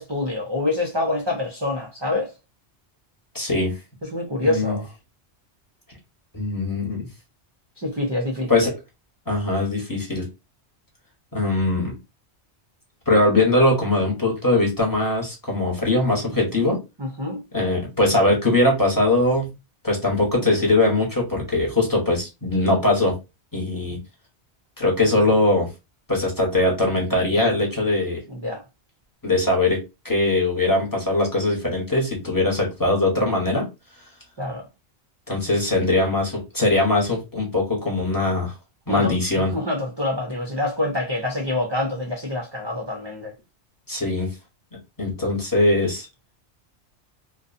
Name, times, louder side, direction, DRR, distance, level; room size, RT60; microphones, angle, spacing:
voice 1, 0.0-2.3 4.0-4.9 7.8-8.7 17.0-17.4 28.3-28.6 34.4-34.7 38.9-43.3, left 2 dB, 40° right, 0.4 m, -26 dB
voice 2, 3.3-3.7 4.4-4.8 6.3-7.0 8.5-8.7 9.3-10.3 11.3-12.0 13.1-16.8 17.5-19.5 19.8-23.1 23.5-24.0 24.8-25.7 26.1-28.2 29.2-29.8 30.0-33.7 35.3-38.5 38.9-39.5 43.9-44.3 45.0-46.1, left 2 dB, 20° left, 0.9 m, -21 dB
2.5 x 2.3 x 2.5 m
omnidirectional pair, 1.2 m